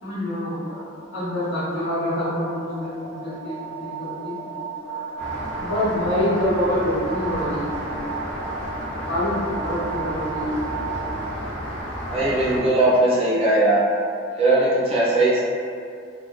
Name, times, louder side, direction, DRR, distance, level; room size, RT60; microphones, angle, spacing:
voice 1, 0.0-4.4 4.8-5.1 5.4-7.6 9.0-9.3 9.6-10.6, left 1 dB, 80° left, -13 dB, 1.0 m, -26 dB
sound 1, 0.7-11.3, right 5 dB, 50° left, 0.9 m, -35 dB
Rain, 5.2-12.6, equal, 10° left, 0.9 m, -32 dB
voice 2, 12.1-13.9 14.3-15.4, right 2 dB, 30° right, -8 dB, 0.6 m, -19 dB
2.7 x 2.0 x 2.3 m, 2.4 s
head